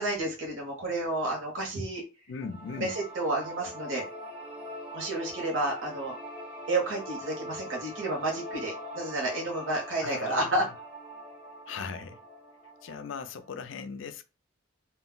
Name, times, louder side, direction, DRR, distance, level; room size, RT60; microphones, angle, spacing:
voice 1, 0.0-2.0 2.8-4.0 4.9-6.2 6.7-10.7, right 2 dB, 75° right, 0.9 m, -31 dB
voice 2, 2.3-2.9 10.0-10.6 11.7-12.2 12.8-14.2, left 5 dB, 70° left, 0.4 m, -38 dB
sound 1, 2.4-13.5, equal, 5° right, 0.5 m, -43 dB
2.2 x 2.0 x 3.7 m
head